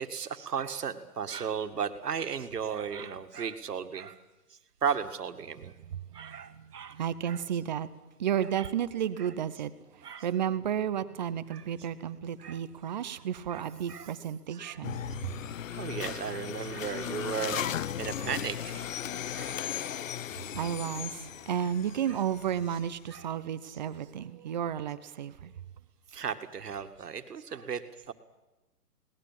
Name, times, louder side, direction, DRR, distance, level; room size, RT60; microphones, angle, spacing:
voice 1, 0.0-4.2 4.8-5.7 6.1-7.0 7.2-7.4 8.4-8.7 9.2-9.3 10.0-10.3 11.5-11.7 12.4-12.6 13.5-14.1 14.5-14.8 15.7-17.7 18.0-18.9 19.3-19.6 22.1-22.2 23.1-23.3 23.6-23.8 26.1-28.1, right 7 dB, 75° right, 8 dB, 2.1 m, -35 dB
voice 2, 5.8-7.9 8.2-15.3 20.5-25.5, right 9 dB, 30° right, 14 dB, 0.8 m, -33 dB
sound 1, 14.8-22.9, left 10 dB, 55° left, 0.6 m, -37 dB
22.0 x 19.0 x 7.5 m, 1.1 s
hypercardioid pair, 155°, 47 cm